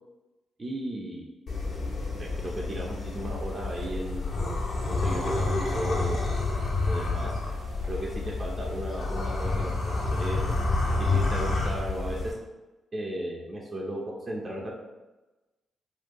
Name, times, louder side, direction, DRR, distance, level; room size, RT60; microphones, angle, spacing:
voice 1, 0.6-1.3 2.2-4.3 4.9-6.3 6.9-7.4 7.9-10.4 10.8-12.3 12.9-14.7, right 1 dB, 40° right, -3 dB, 0.5 m, -35 dB
sound 1, 1.5-12.3, left 3 dB, 55° left, 0.7 m, -29 dB
2.5 x 2.1 x 3.7 m, 1.1 s
hypercardioid pair, 40°, 0 cm